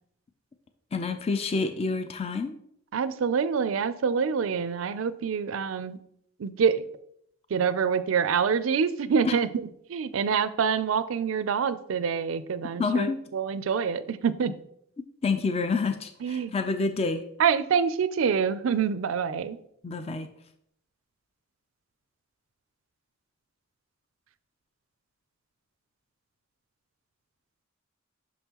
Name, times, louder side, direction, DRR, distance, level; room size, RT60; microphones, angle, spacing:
voice 1, 0.9-2.6 9.2-9.4 12.8-13.2 15.2-17.2 19.8-20.3, left 4 dB, 30° left, 8 dB, 0.4 m, -28 dB
voice 2, 2.9-6.0 6.4-6.9 7.5-9.6 9.9-14.5 16.2-16.5 17.4-19.6, right 6 dB, 75° right, 14 dB, 0.4 m, -26 dB
6.2 x 5.4 x 2.9 m, 0.71 s
head